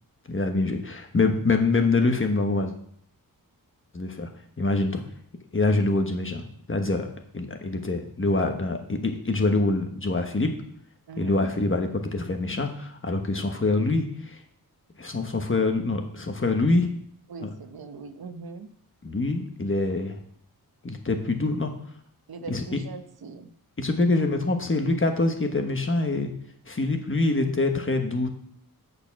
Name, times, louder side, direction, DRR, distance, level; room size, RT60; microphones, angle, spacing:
voice 1, 0.3-2.7 3.9-4.3 4.6-5.0 5.5-7.1 7.3-10.5 11.2-14.4 15.0-16.9 17.4-17.5 19.0-20.2 20.8-21.7 22.5-22.6 23.8-26.3 26.7-28.3, left 2 dB, 35° left, 5 dB, 1.3 m, -25 dB
voice 2, 11.1-11.5 17.3-18.7 22.3-23.5, right 4 dB, 90° right, 8 dB, 0.9 m, -40 dB
8.0 x 7.0 x 6.0 m, 0.65 s
wide cardioid pair, 115°, 36 cm